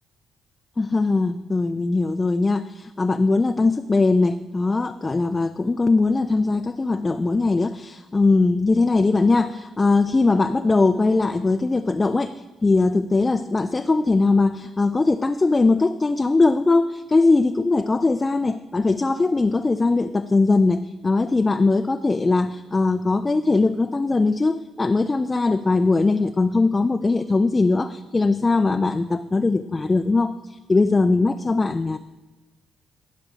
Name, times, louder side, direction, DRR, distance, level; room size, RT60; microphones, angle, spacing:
voice 1, 0.8-32.0, left 3 dB, 30° left, 9 dB, 0.4 m, -20 dB
11.5 x 5.2 x 6.3 m, 1.1 s
hypercardioid pair, 50°, 0 cm